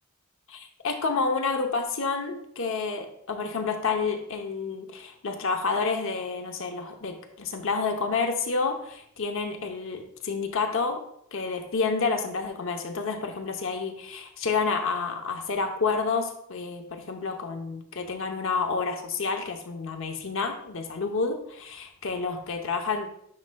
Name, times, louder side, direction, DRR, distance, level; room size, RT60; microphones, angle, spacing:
voice 1, 0.5-11.0 11.3-23.1, left 4 dB, 70° left, 4 dB, 0.8 m, -29 dB
9.6 x 5.3 x 2.2 m, 0.72 s
head